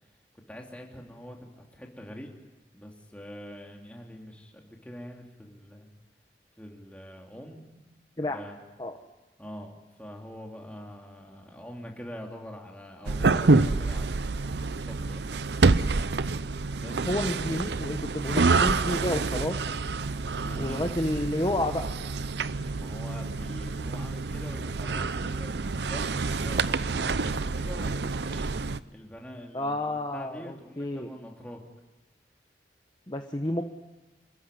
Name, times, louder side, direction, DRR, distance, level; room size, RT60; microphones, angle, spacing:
voice 1, 0.3-2.3 2.7-5.9 6.6-7.8 8.3-8.6 9.4-15.4 16.8-17.4 20.3-20.8 22.7-28.5 28.9-31.6, equal, 10° left, 0 dB, 3.1 m, -44 dB
sound 1, 13.1-28.8, right 3 dB, 75° right, 0.7 m, -27 dB
voice 2, 17.1-19.6 20.6-21.8 29.5-31.1 33.1-33.6, left 1 dB, 25° left, 5 dB, 1.1 m, -30 dB
27.0 x 15.0 x 10.0 m, 1.1 s
head